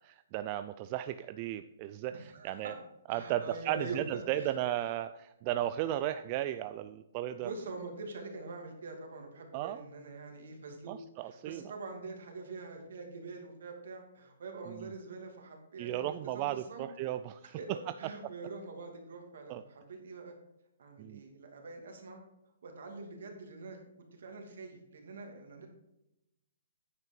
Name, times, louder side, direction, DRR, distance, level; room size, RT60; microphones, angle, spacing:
voice 1, 0.0-2.7 3.1-5.1 5.4-7.5 9.5-9.8 10.9-11.6 14.7-14.9 15.8-17.6 19.5-19.6 21.0-21.2, right 13 dB, 35° right, 10 dB, 0.4 m, -35 dB
voice 2, 2.1-2.7 3.1-4.0 4.3-4.5 7.4-10.9 11.2-17.1 17.6-17.7 18.0-20.3 20.8-22.2 22.6-23.8 24.1-25.7, right 3 dB, 70° right, 3 dB, 2.5 m, -44 dB
9.4 x 5.5 x 5.4 m, 0.87 s
hypercardioid pair, 145°, 0 cm